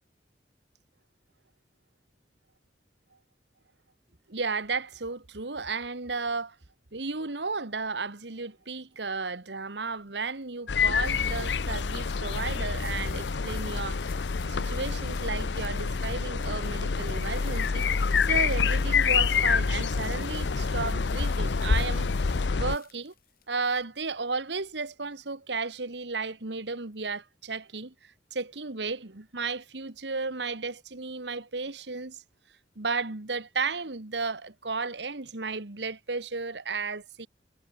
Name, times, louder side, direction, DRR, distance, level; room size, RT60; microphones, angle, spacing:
voice 1, 4.3-6.6 6.9-14.0 14.4-17.8 18.2-22.1 22.5-23.1 23.5-32.2 32.8-37.3, right 4 dB, 80° right, 1.8 m, -34 dB
sound 1, 10.0-24.7, left 11 dB, 55° left, 4.2 m, -53 dB
sound 2, 10.7-22.8, left 5 dB, 90° left, 0.7 m, -27 dB
head